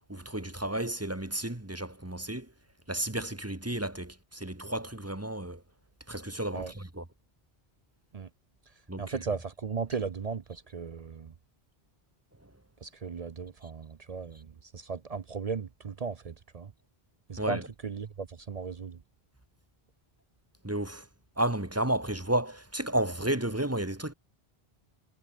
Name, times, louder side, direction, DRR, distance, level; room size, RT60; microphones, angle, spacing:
voice 1, 0.1-2.5 2.9-5.6 6.1-7.1 8.9-9.2 12.4-12.5 17.4-17.7 20.6-21.1 21.4-24.1, right 1 dB, 15° right, 1.6 m, -32 dB
voice 2, 9.0-11.3 12.8-16.7 17.3-19.0, right 5 dB, 45° right, 0.6 m, -36 dB
omnidirectional pair, 1.1 m